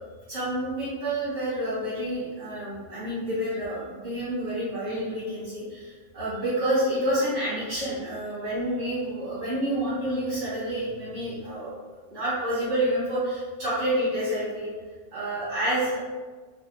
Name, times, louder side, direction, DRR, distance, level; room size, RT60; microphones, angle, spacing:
voice 1, 0.3-11.7 12.1-14.7 15.1-16.0, right 1 dB, 60° right, -12 dB, 1.7 m, -28 dB
3.3 x 2.9 x 2.9 m, 1.4 s
omnidirectional pair, 1.5 m